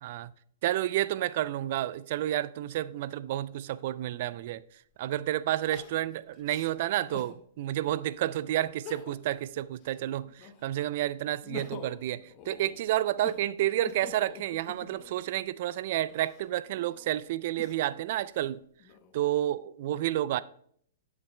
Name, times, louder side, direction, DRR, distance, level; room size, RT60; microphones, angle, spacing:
voice 1, 0.0-0.3 0.6-4.6 5.0-18.6 19.1-20.4, right 13 dB, 55° right, 0.3 m, -30 dB
Crying sobbing, 5.7-7.4 7.9-8.0 8.7-9.4 9.8-10.8 11.2-15.3 16.0-18.0 18.6-19.4, left 7 dB, 40° left, 0.8 m, -47 dB
11.5 x 7.1 x 2.2 m
hypercardioid pair, 115°, 0 cm